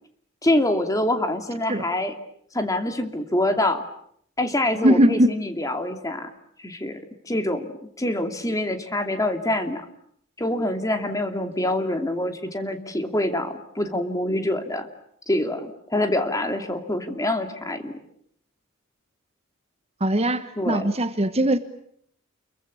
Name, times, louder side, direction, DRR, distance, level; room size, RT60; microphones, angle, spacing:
voice 1, 0.4-2.1 2.5-3.8 4.4-6.3 6.6-7.7 8.0-9.8 10.4-14.9 15.3-17.9 20.6-20.8, left 1 dB, 15° left, 6 dB, 2.7 m, -25 dB
voice 2, 4.8-5.3 20.0-21.6, right 1 dB, 30° right, 10 dB, 1.2 m, -20 dB
30.0 x 23.0 x 8.4 m, 0.69 s
head